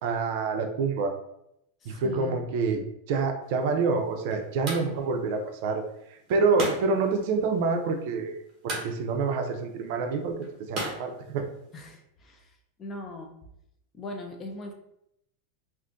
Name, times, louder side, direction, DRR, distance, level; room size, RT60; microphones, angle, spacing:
voice 1, 0.0-1.1 1.8-5.8 6.1-8.3 8.6-10.4 10.7-11.5, right 4 dB, 50° right, 5 dB, 0.5 m, -27 dB
voice 2, 1.8-2.4 11.7-12.5 12.8-13.3 13.9-14.7, left 2 dB, 20° left, 3 dB, 0.4 m, -40 dB
sound 1, 3.4-12.0, right 2 dB, 25° right, 1.0 m, -39 dB
2.5 x 2.5 x 3.6 m, 0.79 s
supercardioid pair, 170°, 0 cm